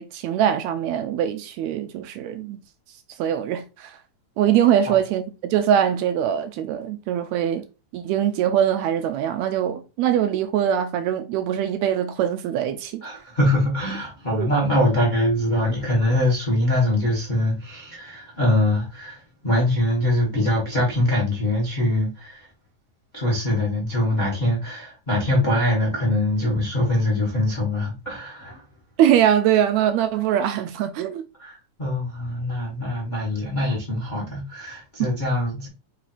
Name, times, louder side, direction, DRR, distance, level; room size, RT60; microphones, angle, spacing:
voice 1, 0.0-2.6 3.2-3.9 4.4-7.6 7.9-13.0 14.4-14.5 29.0-31.2 35.0-35.1, right 10 dB, 80° right, 1.7 m, -22 dB
voice 2, 13.0-22.5 23.1-28.6 31.4-35.7, left 1 dB, 65° left, 0.4 m, -23 dB
4.8 x 4.4 x 2.5 m
omnidirectional pair, 3.4 m